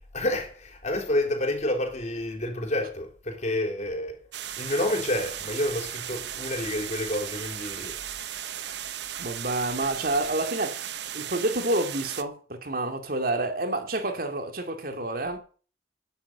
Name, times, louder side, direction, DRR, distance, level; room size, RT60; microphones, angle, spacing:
voice 1, 0.1-4.2 4.6-8.0 8.6-8.7, left 1 dB, 40° left, 4.2 m, -29 dB
sound 1, 4.3-12.2, right 10 dB, 75° right, 0.9 m, -36 dB
voice 2, 9.2-15.4, right 2 dB, 55° right, 2.7 m, -29 dB
12.5 x 10.5 x 7.1 m
head